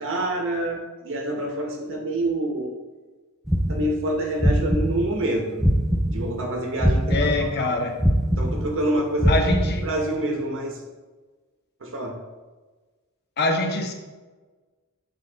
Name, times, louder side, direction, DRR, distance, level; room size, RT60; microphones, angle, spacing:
voice 1, 0.0-2.7 3.7-5.7 6.1-7.3 7.6-7.8 8.4-9.3 9.8-10.8 11.8-12.1, right 1 dB, 60° right, 1 dB, 0.9 m, -27 dB
sound 1, 3.5-6.4 6.8-10.1, equal, ahead, 0.4 m, -22 dB
voice 2, 7.1-8.0 9.3-9.9 13.4-13.9, left 2 dB, 50° left, 4 dB, 0.8 m, -24 dB
7.5 x 3.6 x 3.9 m, 1.3 s
head